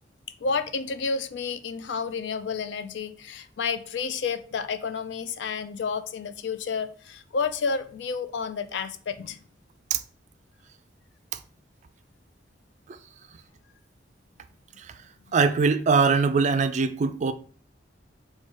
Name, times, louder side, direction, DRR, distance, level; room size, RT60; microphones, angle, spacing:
voice 1, 0.4-9.4, left 5 dB, 70° left, 0.4 m, -30 dB
voice 2, 15.3-17.3, right 4 dB, 40° right, 0.3 m, -21 dB
4.2 x 2.3 x 4.4 m
head